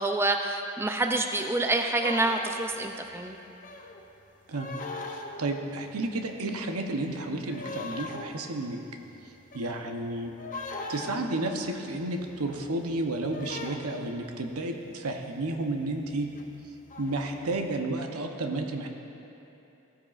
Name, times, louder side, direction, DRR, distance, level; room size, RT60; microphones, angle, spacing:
voice 1, 0.0-3.4, right 2 dB, 10° right, 4 dB, 0.3 m, -27 dB
sound 1, 2.0-2.8 3.6-4.1 4.5-5.8 6.1-7.1 7.5-14.6 15.5-15.8 16.1-17.6, left 3 dB, 40° left, 0.6 m, -41 dB
voice 2, 5.1-8.8 9.5-10.3 10.9-16.3 17.0-18.9, right 2 dB, 85° right, 3 dB, 0.8 m, -32 dB
15.5 x 8.8 x 2.5 m, 2.9 s
head